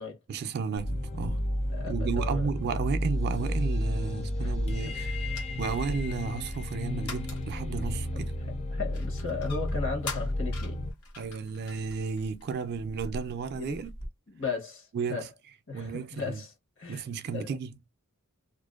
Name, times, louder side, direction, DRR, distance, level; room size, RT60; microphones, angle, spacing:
voice 1, 0.3-1.4 1.9-5.2 5.6-8.3 11.2-13.9 14.9-15.3 15.7-16.4 16.9-17.9, right 5 dB, 45° right, 0.3 m, -33 dB
sound 1, 0.8-14.1, left 1 dB, 90° left, 0.9 m, -44 dB
sound 2, 0.8-10.9, left 1 dB, 25° left, 0.4 m, -31 dB
voice 2, 1.7-2.8 4.4-4.5 4.8-5.5 7.8-8.2 8.7-10.8 13.5-13.8 14.3-15.3 15.7-17.0 17.3-17.5, left 4 dB, 60° left, 0.9 m, -37 dB
2.5 x 2.1 x 2.3 m
head